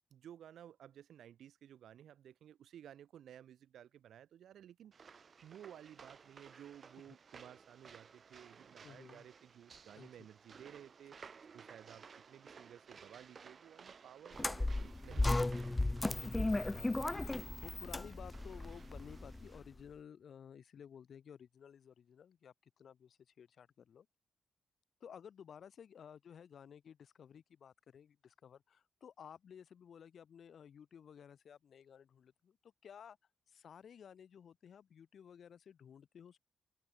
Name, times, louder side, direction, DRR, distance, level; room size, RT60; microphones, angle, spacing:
voice 1, 0.1-4.9 5.4-15.8, right 10 dB, 80° right, 1.8 m, -56 dB
sound 1, 4.9-19.5, right 6 dB, 40° right, 3.5 m, -58 dB
voice 2, 8.8-9.3 10.0-10.1 16.0-24.1 25.0-33.2 33.5-36.4, left 8 dB, 60° left, 3.9 m, -55 dB
sound 2, 14.3-19.6, left 2 dB, 15° left, 0.3 m, -35 dB
open air
wide cardioid pair, 135°, 0 cm